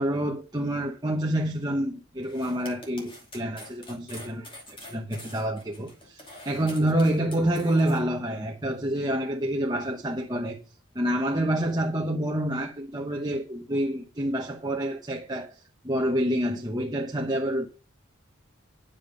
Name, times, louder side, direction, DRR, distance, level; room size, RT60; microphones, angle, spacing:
voice 1, 0.0-10.6 10.9-17.7, right 1 dB, 20° right, 1.1 m, -28 dB
sound 1, 2.2-8.0, left 1 dB, 25° left, 2.6 m, -46 dB
10.0 x 7.2 x 5.2 m
head